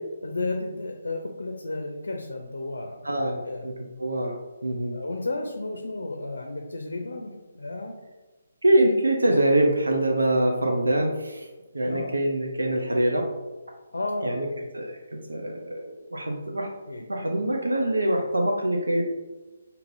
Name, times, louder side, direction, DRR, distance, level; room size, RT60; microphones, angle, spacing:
voice 1, 0.2-3.0 3.4-3.6 4.9-7.9 11.8-12.1 13.9-14.7 16.9-17.0, left 2 dB, 80° left, 3 dB, 0.5 m, -32 dB
voice 2, 3.0-3.7 4.0-4.3 4.6-5.0 8.6-11.5 11.7-13.3 14.2-14.5 14.7-15.0 15.3-16.7 17.1-19.0, right 1 dB, 85° right, 1 dB, 0.5 m, -24 dB
5.2 x 2.7 x 2.6 m, 1.2 s
figure-of-eight pair, 145°, 0 cm